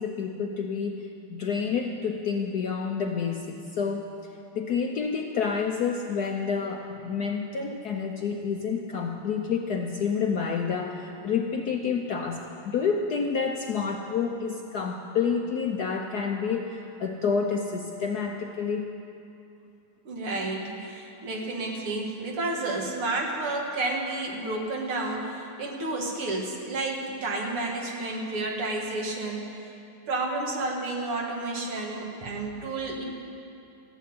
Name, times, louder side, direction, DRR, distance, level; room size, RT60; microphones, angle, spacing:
voice 1, 0.0-18.9, left 6 dB, 65° left, 2 dB, 1.0 m, -29 dB
voice 2, 20.1-29.6 30.1-33.0, right 2 dB, 75° right, -1 dB, 2.7 m, -31 dB
14.5 x 8.2 x 9.6 m, 2.7 s
omnidirectional pair, 2.4 m